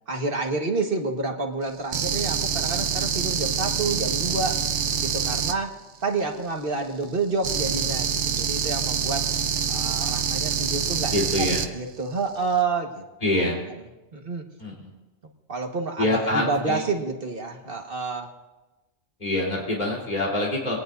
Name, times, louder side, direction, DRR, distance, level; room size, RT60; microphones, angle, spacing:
voice 1, 0.1-4.6 5.0-5.7 6.0-9.2 9.7-13.6 14.1-14.4 15.5-18.3, right 3 dB, 50° right, 2 dB, 1.8 m, -29 dB
sound 1, 1.9-5.5 7.4-11.7, right 7 dB, 80° right, 1.1 m, -26 dB
voice 2, 11.1-11.6 13.2-13.6 14.6-14.9 16.0-16.8 19.2-20.8, left 1 dB, 40° left, -4 dB, 3.8 m, -25 dB
24.0 x 18.5 x 2.7 m, 1.1 s
omnidirectional pair, 1.2 m